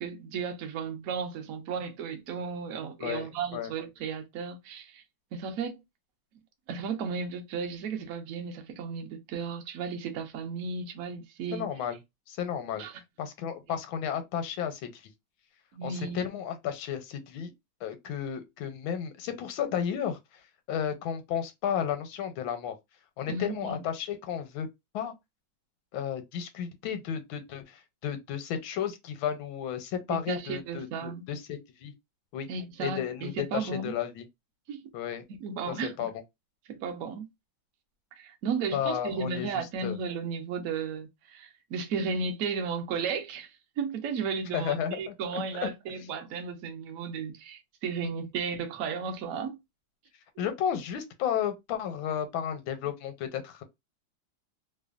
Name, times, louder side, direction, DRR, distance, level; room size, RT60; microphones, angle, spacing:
voice 1, 0.0-5.0 5.3-5.8 6.7-11.7 12.8-13.0 15.7-16.3 23.3-23.9 30.1-31.3 32.5-33.9 34.7-34.8 35.3-36.1 36.7-37.3 38.2-43.5 43.8-49.6, right 5 dB, 70° right, 0.8 m, -34 dB
voice 2, 3.0-3.7 11.5-12.0 12.3-12.8 13.2-15.1 15.8-17.5 17.8-20.2 20.7-22.7 23.2-24.7 24.9-25.1 25.9-31.9 32.3-32.5 32.8-34.2 34.9-35.2 35.7-36.1 38.7-40.0 44.5-45.7 48.0-48.1 50.4-53.6, left 9 dB, 85° left, 1.4 m, -33 dB
3.2 x 2.1 x 2.3 m
omnidirectional pair, 2.1 m